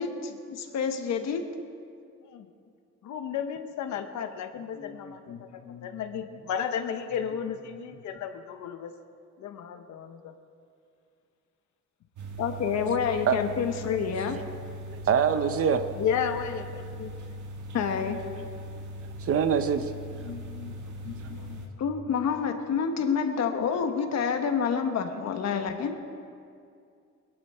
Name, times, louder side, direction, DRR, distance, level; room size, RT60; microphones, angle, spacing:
voice 1, 0.0-1.5 4.8-5.9 12.4-14.4 17.0-17.1 17.7-18.2 20.2-26.0, left 6 dB, 65° left, 6 dB, 1.3 m, -29 dB
voice 2, 3.0-8.9 9.4-10.3 15.9-17.4, left 7 dB, 80° left, 7 dB, 1.1 m, -33 dB
sound 1, 12.2-21.7, equal, 90° right, 1.7 m, -40 dB
voice 3, 14.9-15.8 19.2-19.9, right 7 dB, 50° right, 9 dB, 0.8 m, -24 dB
21.5 x 11.5 x 4.4 m, 2.4 s
cardioid pair, 145°, 29 cm